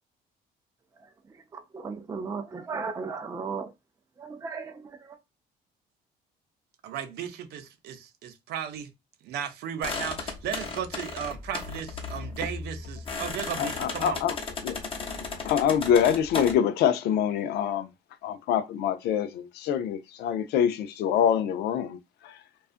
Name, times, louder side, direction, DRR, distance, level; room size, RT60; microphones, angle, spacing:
voice 1, 1.5-3.7 4.2-5.2, right 5 dB, 20° right, 0.4 m, -35 dB
voice 2, 6.8-8.9 9.2-14.2, right 9 dB, 75° right, 0.6 m, -35 dB
sound 1, 9.8-16.5, left 4 dB, 30° left, 0.8 m, -35 dB
voice 3, 13.6-14.4 14.6-14.8 15.3-17.9 18.2-22.4, left 9 dB, 75° left, 0.4 m, -25 dB
2.4 x 2.3 x 2.4 m
cardioid pair, 110°, 17 cm